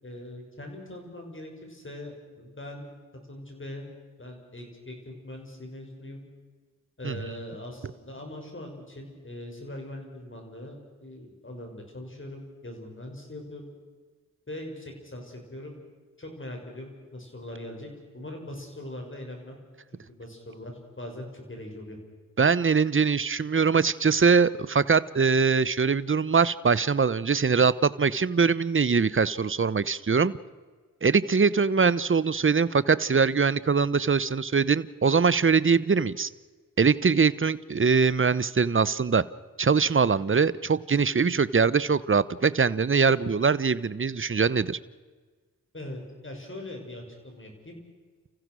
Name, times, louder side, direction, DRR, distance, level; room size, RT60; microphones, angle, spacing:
voice 1, 0.0-2.9 3.3-3.9 4.2-6.2 7.0-13.7 14.5-15.7 16.2-19.6 19.9-22.0 45.7-47.8, left 1 dB, 35° left, 2 dB, 6.2 m, -41 dB
voice 2, 22.4-30.3 31.0-36.3 36.8-39.2 39.6-44.8, right 5 dB, 35° right, 18 dB, 0.9 m, -22 dB
30.0 x 15.5 x 6.3 m, 1.4 s
cardioid pair, 45°, 34 cm